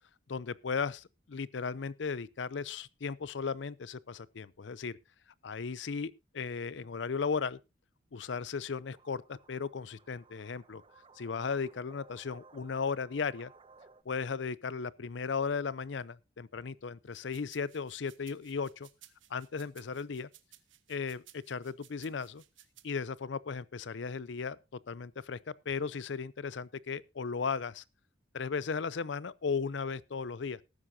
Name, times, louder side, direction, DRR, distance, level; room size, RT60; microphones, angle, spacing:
voice 1, 0.3-5.0 5.4-7.6 8.1-10.8 11.2-13.5 14.1-18.9 19.3-20.3 20.9-22.4 22.8-24.6 24.9-27.8 28.3-30.6, left 5 dB, 70° left, 0.5 m, -36 dB
sound 1, 8.8-14.0, right 3 dB, 30° right, 0.7 m, -59 dB
sound 2, 17.1-22.9, right 13 dB, 85° right, 1.3 m, -59 dB
18.5 x 9.7 x 2.7 m
head